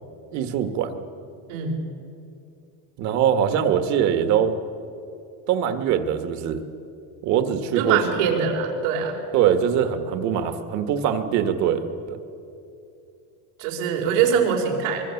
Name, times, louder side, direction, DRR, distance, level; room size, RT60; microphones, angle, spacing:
voice 1, 0.3-1.0 3.0-4.5 5.5-6.6 7.2-8.0 8.3-8.4 9.3-12.2, right 9 dB, 45° right, 8 dB, 1.6 m, -22 dB
voice 2, 1.5-1.8 7.7-9.2 13.6-15.0, right 6 dB, 90° right, 0 dB, 5.1 m, -23 dB
25.0 x 22.5 x 7.2 m, 2.6 s
cardioid pair, 175°, 38 cm